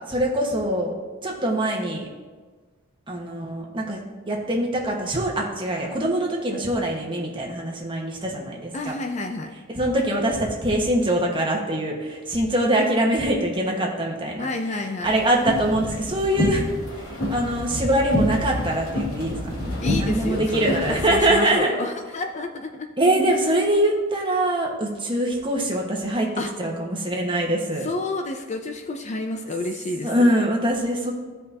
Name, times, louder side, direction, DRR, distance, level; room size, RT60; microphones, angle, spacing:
voice 1, 0.1-0.9 1.2-2.0 3.1-4.0 4.3-8.9 9.7-14.5 15.0-16.6 17.3-21.7 23.0-26.3 26.6-27.9 30.0-31.1, right 1 dB, 25° right, -1 dB, 1.4 m, -23 dB
voice 2, 8.7-9.6 14.4-15.2 19.8-22.9 26.4-26.5 27.8-30.3, left 2 dB, 35° left, 5 dB, 0.5 m, -30 dB
sound 1, 15.0-21.2, left 1 dB, 85° left, 2.9 m, -28 dB
15.0 x 5.3 x 2.8 m, 1.4 s
head